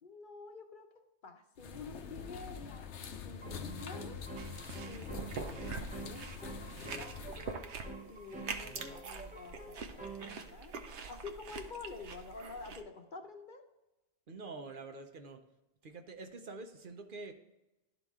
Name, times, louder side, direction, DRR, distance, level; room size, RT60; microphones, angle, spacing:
voice 1, 0.0-2.9 3.2-4.3 4.8-7.6 8.0-10.7 11.1-13.7, left 4 dB, 55° left, 6 dB, 0.8 m, -49 dB
sound 1, 1.6-7.5, left 6 dB, 85° left, 1.0 m, -45 dB
sound 2, 2.4-2.5 3.4-10.4, right 3 dB, 10° right, 0.5 m, -48 dB
sound 3, 4.4-12.8, right 5 dB, 90° right, 1.0 m, -45 dB
voice 2, 14.3-15.4 15.8-17.3, right 3 dB, 55° right, 5 dB, 0.8 m, -46 dB
12.0 x 4.0 x 3.6 m, 0.96 s
omnidirectional pair, 1.1 m